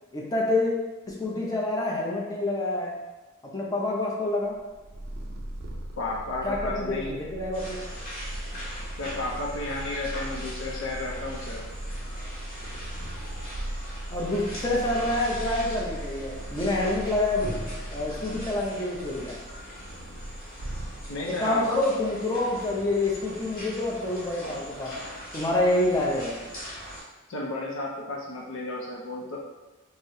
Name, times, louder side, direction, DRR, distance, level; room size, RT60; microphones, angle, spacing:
voice 1, 0.1-0.7 1.1-2.9 3.4-4.5 6.4-7.8 14.1-17.5 17.9-19.3 21.2-24.9 25.3-26.3, left 2 dB, 15° left, -3 dB, 0.5 m, -27 dB
Purr, 4.5-21.4, right 1 dB, 50° right, 0.4 m, -38 dB
voice 2, 6.0-7.2 9.0-11.7 21.1-21.7 27.3-29.4, left 2 dB, 65° left, -2 dB, 0.5 m, -33 dB
sound 1, 7.5-27.0, equal, 45° left, 1.2 m, -41 dB
3.9 x 2.0 x 2.7 m, 1.1 s
head